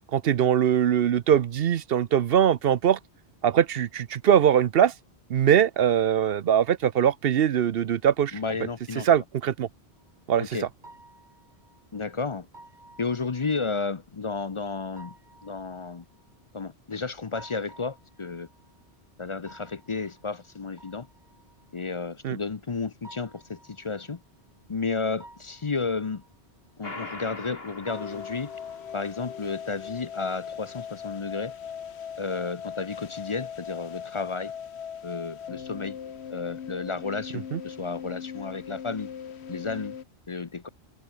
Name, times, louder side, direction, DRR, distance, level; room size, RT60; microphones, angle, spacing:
voice 1, 0.1-3.0 3.4-4.9 5.3-8.4 9.0-9.7 10.3-10.7 22.2-22.4 37.5-37.6, right 9 dB, 65° right, 0.9 m, -22 dB
voice 2, 8.3-9.1 10.4-10.7 11.9-12.5 13.0-15.1 15.4-16.0 16.5-18.5 19.2-21.1 21.7-24.2 24.7-26.2 26.8-28.5 28.9-31.5 32.2-34.5 35.0-36.0 36.3-39.1 39.5-40.0 40.3-40.7, left 4 dB, 35° left, 0.6 m, -32 dB
sound 1, 9.9-29.0, right 2 dB, 45° right, 4.3 m, -54 dB
sound 2, 26.8-29.3, left 2 dB, 65° left, 4.0 m, -42 dB
sound 3, 27.9-40.0, left 8 dB, 80° left, 1.3 m, -39 dB
omnidirectional pair, 1.1 m